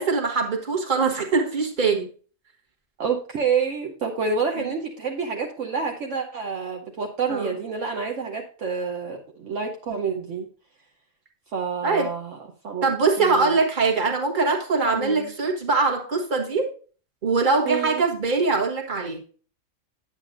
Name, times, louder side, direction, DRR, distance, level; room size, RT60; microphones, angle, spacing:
voice 1, 0.0-2.1 4.6-4.7 7.3-7.5 11.8-12.1 12.8-16.7 17.2-19.2, right 4 dB, 35° right, 1 dB, 1.6 m, -22 dB
voice 2, 3.0-10.5 11.5-12.4 12.6-12.9 13.2-13.6 14.9-15.3 17.6-18.0, right 5 dB, 65° right, 0 dB, 1.2 m, -28 dB
9.3 x 8.0 x 2.6 m, 0.39 s
omnidirectional pair, 1.4 m